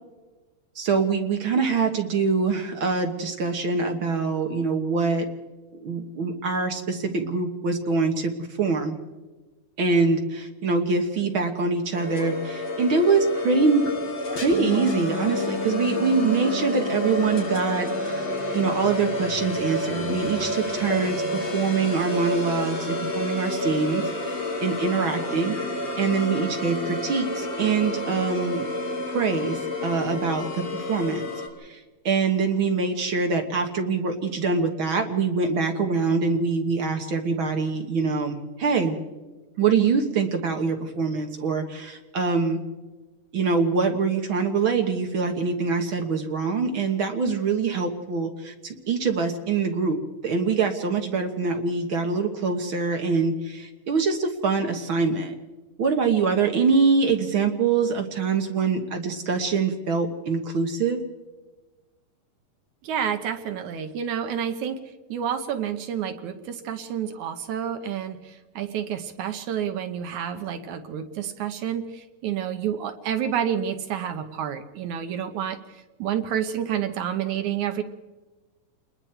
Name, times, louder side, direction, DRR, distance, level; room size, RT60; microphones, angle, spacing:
voice 1, 0.7-5.3 5.8-9.0 9.8-13.9 14.3-18.2 18.5-25.6 26.0-28.7 29.1-31.3 31.7-39.0 39.6-42.6 43.3-55.3 55.8-61.0, right 4 dB, 55° right, 4 dB, 1.6 m, -24 dB
sound 1, 12.0-31.5, left 1 dB, 35° left, 3.9 m, -29 dB
Bass guitar, 14.5-20.8, left 4 dB, 10° left, 1.8 m, -38 dB
voice 2, 62.8-64.8 65.1-77.8, right 9 dB, 70° right, 8 dB, 2.2 m, -29 dB
27.0 x 21.5 x 4.5 m, 1.2 s
omnidirectional pair, 3.9 m